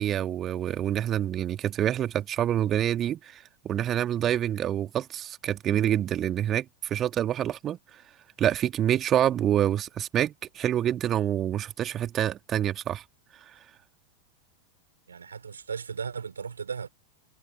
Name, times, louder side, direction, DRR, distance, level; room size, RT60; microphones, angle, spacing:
voice 1, 0.0-7.8 8.4-13.0, right 11 dB, 30° right, 2.3 m, -27 dB
voice 2, 15.1-16.9, right 6 dB, 70° right, 3.4 m, -36 dB
figure-of-eight pair, 90°, 0 cm